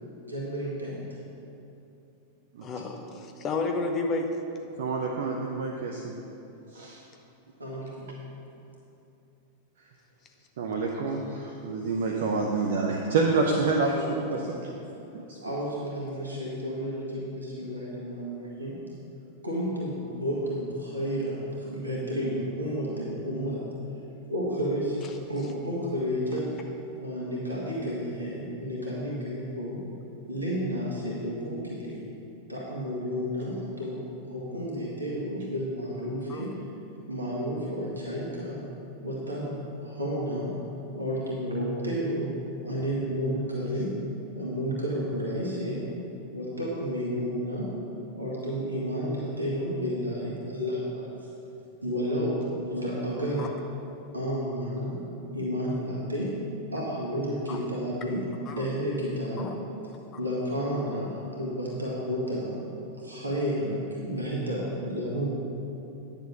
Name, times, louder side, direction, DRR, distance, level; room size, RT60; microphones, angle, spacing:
voice 1, 0.2-1.0 7.6-8.1 13.5-14.1 14.3-14.6 15.1-18.8 19.4-23.7 24.3-25.0 25.3-26.5 27.0-29.8 30.3-32.1 32.5-36.6 37.1-38.6 39.0-40.5 40.9-42.3 42.6-44.0 44.3-45.9 46.3-47.7 48.2-51.0 51.8-53.5 54.1-55.0 55.3-56.3 56.7-58.3 58.6-59.5 60.2-62.5 63.0-65.3, equal, 80° right, -5 dB, 1.9 m, -31 dB
voice 2, 2.6-4.4 36.3-36.4 53.4-53.5 57.5-57.6 58.5-58.6 59.4-59.5, left 3 dB, 30° left, 4 dB, 1.0 m, -31 dB
voice 3, 4.8-6.2 6.7-7.0 10.6-14.8 15.3-15.5, right 3 dB, 60° right, 1 dB, 0.7 m, -28 dB
10.5 x 6.9 x 5.7 m, 2.9 s
figure-of-eight pair, 90°, 0 cm